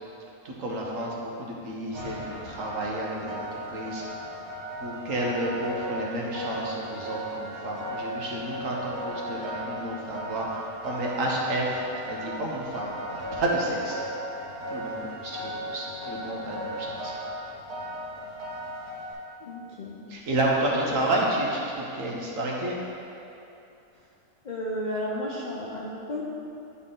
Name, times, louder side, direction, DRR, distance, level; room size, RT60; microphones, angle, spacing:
voice 1, 0.4-4.0 4.8-14.0 14.7-17.1 20.1-22.8, right 1 dB, 65° right, -2 dB, 1.3 m, -30 dB
sound 1, 1.9-19.1, equal, 85° right, 1.9 m, -36 dB
voice 2, 19.4-20.3 20.9-21.0 23.9-24.1 24.4-26.2, left 1 dB, 50° left, -5 dB, 0.5 m, -33 dB
9.7 x 4.0 x 3.8 m, 2.8 s
omnidirectional pair, 1.6 m